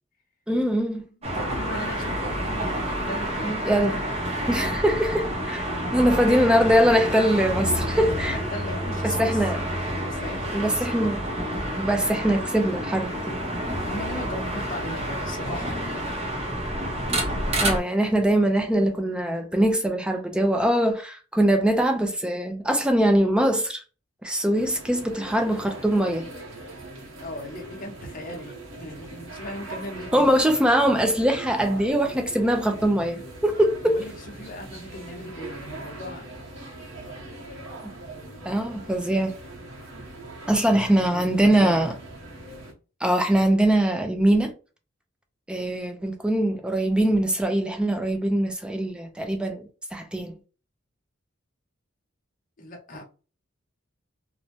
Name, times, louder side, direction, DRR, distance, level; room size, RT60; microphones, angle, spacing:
voice 1, 0.5-1.0 3.4-4.0 4.5-8.4 9.0-9.7 10.5-11.2 11.7-13.4 17.0-17.2 17.6-23.8 24.2-26.3 30.1-34.0 38.4-39.4 40.5-41.9 43.0-44.5 45.5-50.3, right 1 dB, 5° right, 0.3 m, -22 dB
voice 2, 1.2-4.1 5.7-6.4 8.2-9.4 9.9-11.0 13.9-16.2 27.2-30.3 33.8-34.1 34.4-36.3 37.2-37.4 40.4-41.9 52.6-53.0, left 1 dB, 45° left, 0.8 m, -38 dB
sound 1, 1.2-17.8, equal, 30° right, 0.7 m, -29 dB
sound 2, 24.5-42.7, right 2 dB, 85° right, 1.0 m, -41 dB
2.6 x 2.1 x 2.9 m
head